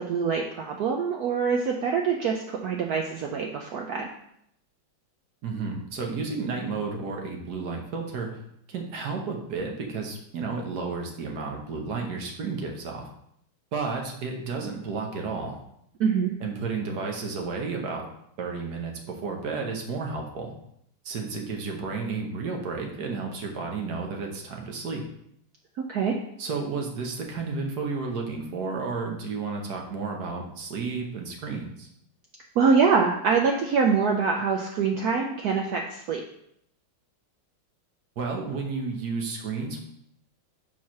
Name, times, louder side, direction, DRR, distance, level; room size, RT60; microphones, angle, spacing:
voice 1, 0.0-4.1 16.0-16.3 25.9-26.2 32.6-36.2, right 5 dB, 80° right, 1 dB, 0.8 m, -24 dB
voice 2, 5.4-8.3 8.7-13.1 13.7-15.5 16.4-18.1 18.4-20.5 21.0-25.0 26.4-31.9 38.2-39.8, right 4 dB, 55° right, 1 dB, 1.3 m, -32 dB
4.7 x 4.5 x 5.7 m, 0.74 s
omnidirectional pair, 2.3 m